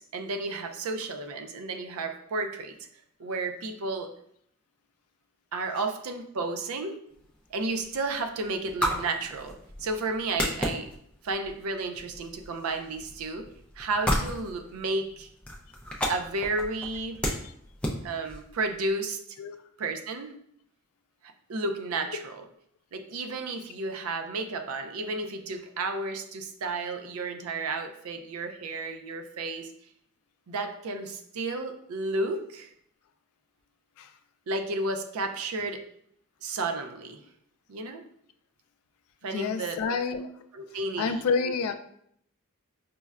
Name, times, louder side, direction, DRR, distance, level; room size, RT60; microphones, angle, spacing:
voice 1, 0.0-2.8 3.2-4.1 5.5-7.0 7.5-10.9 11.2-13.5 13.8-15.3 16.1-17.2 18.0-19.2 19.8-20.4 21.5-22.4 22.9-29.7 30.5-32.7 34.5-35.8 36.4-37.2 37.7-38.0 39.2-40.0 40.5-41.2, right 3 dB, 75° right, 6 dB, 0.4 m, -32 dB
sound 1, 7.1-18.9, equal, 5° left, 0.4 m, -35 dB
voice 2, 39.3-40.3 41.0-41.7, left 5 dB, 80° left, 9 dB, 0.3 m, -28 dB
5.2 x 2.1 x 2.3 m, 0.69 s
head